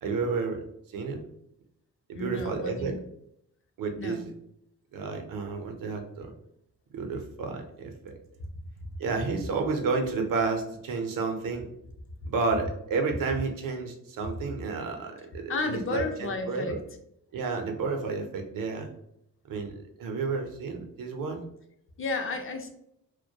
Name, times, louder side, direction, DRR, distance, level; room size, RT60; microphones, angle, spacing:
voice 1, 0.0-0.6 0.9-1.2 2.1-3.0 3.8-4.3 4.9-6.3 6.9-8.2 9.0-11.7 12.2-16.8 17.3-18.9 19.5-21.4, right 4 dB, 85° right, 4 dB, 0.5 m, -31 dB
voice 2, 2.1-3.0 4.0-4.3 8.4-8.5 15.5-16.8 22.0-22.7, left 3 dB, 40° left, 4 dB, 0.5 m, -32 dB
2.2 x 2.1 x 2.7 m, 0.76 s
cardioid pair, 70°, 32 cm